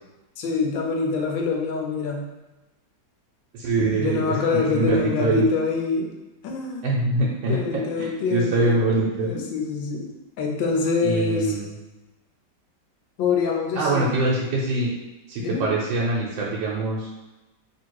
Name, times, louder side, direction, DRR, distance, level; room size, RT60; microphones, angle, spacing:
voice 1, 0.4-2.2 3.8-6.1 6.4-6.9 7.5-8.9 9.2-10.1 10.4-11.5 13.2-14.1 15.4-15.7, left 4 dB, 90° left, 1 dB, 1.4 m, -25 dB
voice 2, 3.5-5.5 6.8-9.3 11.0-11.7 13.8-14.9 15.3-17.1, right 2 dB, 90° right, -4 dB, 1.4 m, -24 dB
3.1 x 2.8 x 4.5 m, 1.0 s
omnidirectional pair, 2.0 m